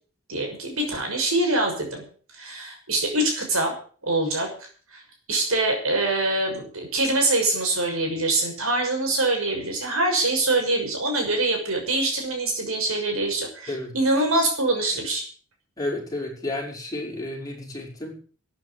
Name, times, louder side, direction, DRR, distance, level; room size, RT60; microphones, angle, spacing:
voice 1, 0.3-2.1 2.3-3.8 4.0-5.0 5.3-15.2, right 2 dB, 75° right, 2 dB, 6.2 m, -24 dB
voice 2, 15.8-18.2, left 2 dB, 15° left, -2 dB, 6.0 m, -31 dB
13.0 x 9.6 x 8.6 m, 0.43 s
head